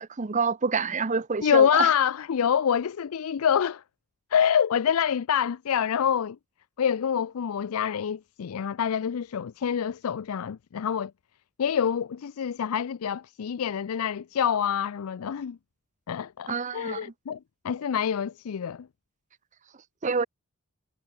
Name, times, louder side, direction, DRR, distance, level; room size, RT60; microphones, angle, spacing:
voice 1, 0.0-1.9 16.5-17.1 20.0-20.2, right 5 dB, 35° right, 0.7 m, -27 dB
voice 2, 1.4-3.8 4.3-6.4 6.8-11.1 11.6-15.6 16.1-17.4 17.6-18.9, left 8 dB, 75° left, 0.4 m, -26 dB
head